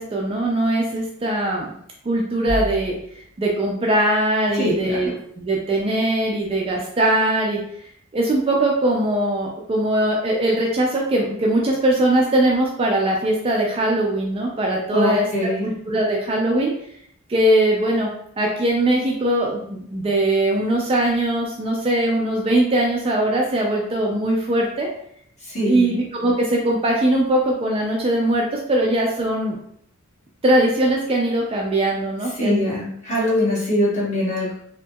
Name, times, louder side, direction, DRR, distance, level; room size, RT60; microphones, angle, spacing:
voice 1, 0.0-1.8 2.0-3.0 3.4-5.1 5.4-7.6 8.1-15.3 15.6-16.7 17.3-24.9 25.7-29.6 30.4-32.7, right 1 dB, 25° right, -1 dB, 0.3 m, -21 dB
sound 1, 2.5-3.4, equal, 70° left, 1.0 m, -29 dB
voice 2, 4.6-5.1 14.9-15.6 25.4-25.9 32.3-34.5, left 1 dB, 35° left, -7 dB, 1.2 m, -22 dB
2.8 x 2.6 x 2.2 m, 0.68 s
head